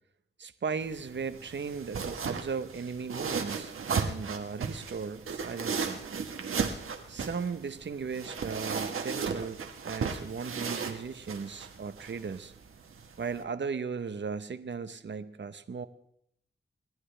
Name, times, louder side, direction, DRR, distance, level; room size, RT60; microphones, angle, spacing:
voice 1, 0.4-6.0 7.1-12.5 13.2-15.9, right 5 dB, 60° right, 11 dB, 1.0 m, -37 dB
sound 1, 0.8-13.4, right 5 dB, 90° right, 1.3 m, -36 dB
28.5 x 11.0 x 3.4 m, 0.73 s
cardioid pair, 65°, 21 cm